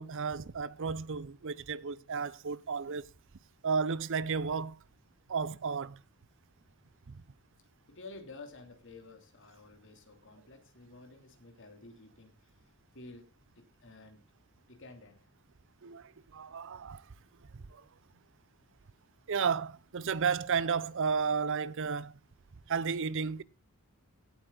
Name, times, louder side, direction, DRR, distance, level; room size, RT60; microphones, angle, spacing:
voice 1, 0.0-3.0 3.6-4.8 5.3-6.0 7.1-7.2 15.8-17.0 17.7-17.8 19.3-22.2 22.7-23.4, right 5 dB, 55° right, 0.6 m, -33 dB
voice 2, 7.9-12.7 12.9-14.2 14.7-15.3, left 3 dB, 55° left, 3.0 m, -52 dB
17.0 x 8.2 x 3.9 m
head